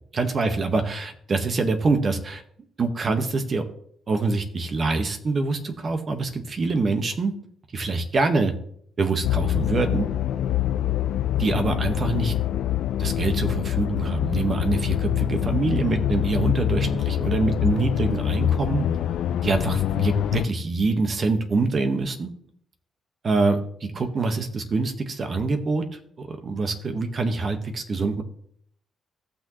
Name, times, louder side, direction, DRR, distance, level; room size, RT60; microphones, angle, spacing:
voice 1, 0.1-2.4 2.8-3.6 4.1-7.3 7.7-8.5 9.0-10.1 11.4-12.3 13.0-18.8 19.4-22.3 23.2-25.8 26.2-28.2, right 3 dB, 40° right, 6 dB, 1.5 m, -25 dB
sound 1, 9.2-20.4, left 12 dB, 80° left, 0.5 m, -25 dB
17.0 x 6.3 x 3.1 m, 0.65 s
cardioid pair, 90°, 0 cm